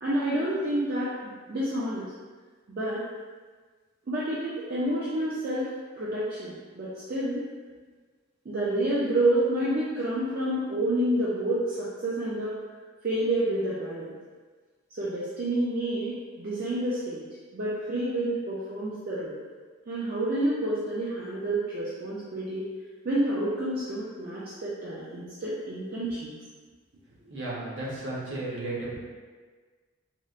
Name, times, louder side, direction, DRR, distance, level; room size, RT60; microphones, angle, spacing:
voice 1, 0.0-2.1 2.7-3.0 4.1-5.7 6.0-7.4 8.5-12.6 13.0-14.1 15.0-17.2 17.5-19.4 19.9-22.7 23.0-26.3, right 1 dB, 50° right, -8 dB, 0.4 m, -29 dB
voice 2, 27.2-29.0, right 2 dB, 65° right, -6 dB, 0.8 m, -34 dB
4.2 x 2.1 x 2.4 m, 1.4 s
head